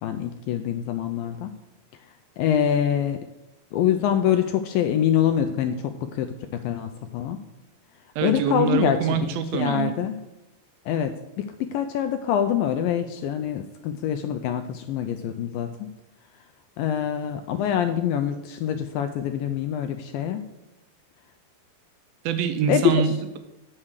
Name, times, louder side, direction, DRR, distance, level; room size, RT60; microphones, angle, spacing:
voice 1, 0.0-1.5 2.4-3.2 3.7-6.3 6.6-7.4 8.2-9.2 9.5-10.2 10.9-15.9 16.8-20.4 22.7-23.0, left 9 dB, 85° left, 7 dB, 2.1 m, -25 dB
voice 2, 8.2-9.9 22.2-23.4, right 8 dB, 80° right, 9 dB, 2.3 m, -25 dB
8.6 x 7.3 x 6.5 m, 0.95 s
omnidirectional pair, 4.6 m